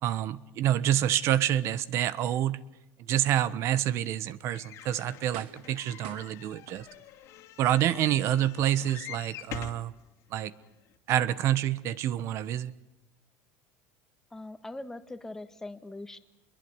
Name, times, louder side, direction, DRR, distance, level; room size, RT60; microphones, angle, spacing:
voice 1, 0.0-2.6 3.1-6.9 7.6-9.9 10.3-10.5 11.1-12.7, right 11 dB, 50° right, 1.2 m, -27 dB
sound 1, 4.4-4.5 5.3-5.8 6.0-7.3 7.8-7.9, right 10 dB, 85° right, 2.2 m, -47 dB
sound 2, 4.5-9.9 10.6-10.7 10.9-11.0, left 11 dB, 55° left, 2.6 m, -46 dB
voice 2, 14.3-16.2, left 2 dB, 10° left, 1.7 m, -41 dB
27.0 x 22.5 x 9.7 m
cardioid pair, 135°, 6 cm